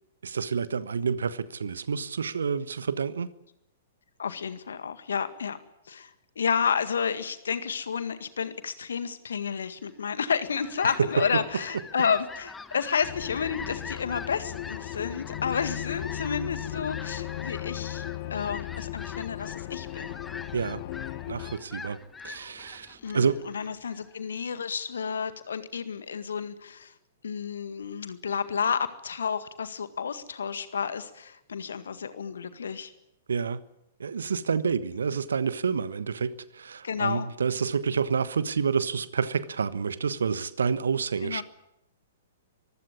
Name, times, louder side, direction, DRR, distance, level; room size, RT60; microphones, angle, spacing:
voice 1, 0.2-3.3 11.0-11.4 20.5-20.8 21.3-23.4 33.3-33.6 34.0-41.4, right 6 dB, 70° right, 1.2 m, -28 dB
voice 2, 4.2-5.6 5.9-18.1 18.3-20.2 23.0-26.9 27.2-32.9 36.8-37.3 41.2-41.4, left 6 dB, 65° left, 1.8 m, -31 dB
Fowl, 10.4-24.1, left 4 dB, 10° left, 1.2 m, -44 dB
sound 1, 13.0-21.6, left 14 dB, 45° left, 1.2 m, -36 dB
24.0 x 15.5 x 9.8 m
figure-of-eight pair, 110°, 0 cm